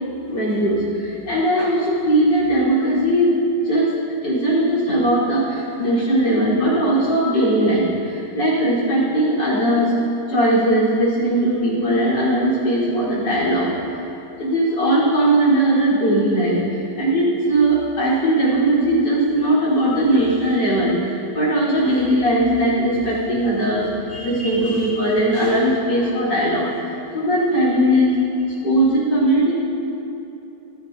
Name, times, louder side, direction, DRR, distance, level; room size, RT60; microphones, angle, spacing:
voice 1, 0.1-3.4 3.6-3.9 4.2-9.9 10.3-13.7 14.4-26.7 27.1-28.1 28.6-29.5, right 1 dB, 55° left, -6 dB, 4.5 m, -19 dB
25.5 x 11.5 x 2.7 m, 2.9 s
omnidirectional pair, 2.2 m